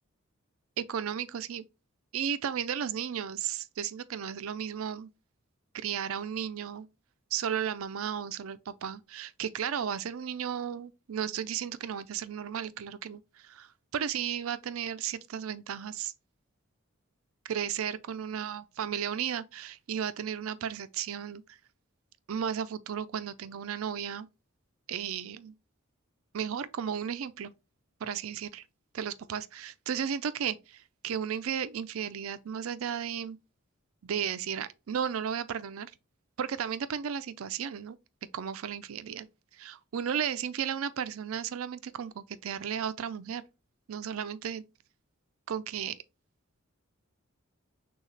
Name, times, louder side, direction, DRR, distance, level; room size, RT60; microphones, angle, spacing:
voice 1, 0.8-1.6 2.1-5.1 5.7-6.9 7.3-16.1 17.4-21.4 22.3-24.3 24.9-25.5 26.3-27.5 28.0-28.6 28.9-33.4 34.0-35.9 36.4-38.0 38.3-39.3 39.6-43.4 43.9-44.6 45.5-46.0, right 8 dB, 75° right, 0.4 m, -34 dB
6.4 x 2.3 x 3.2 m
head